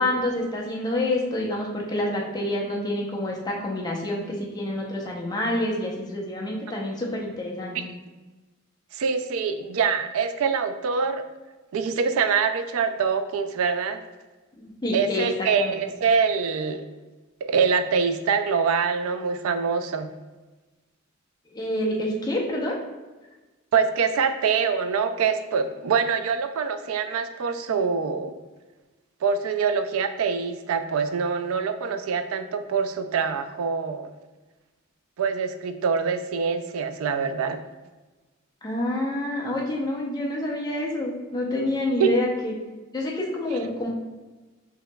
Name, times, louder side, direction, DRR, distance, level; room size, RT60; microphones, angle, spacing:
voice 1, 0.0-7.8 14.8-15.3 15.6-15.8 21.5-22.8 38.6-42.5 42.9-43.9, left 1 dB, 20° left, -2 dB, 0.7 m, -27 dB
voice 2, 8.9-11.2 11.7-14.0 14.9-16.9 17.4-20.1 23.7-28.3 29.2-34.1 35.2-37.6 42.0-42.1 43.5-43.6, right 6 dB, 80° right, 9 dB, 0.4 m, -24 dB
5.5 x 2.9 x 2.2 m, 1.2 s
head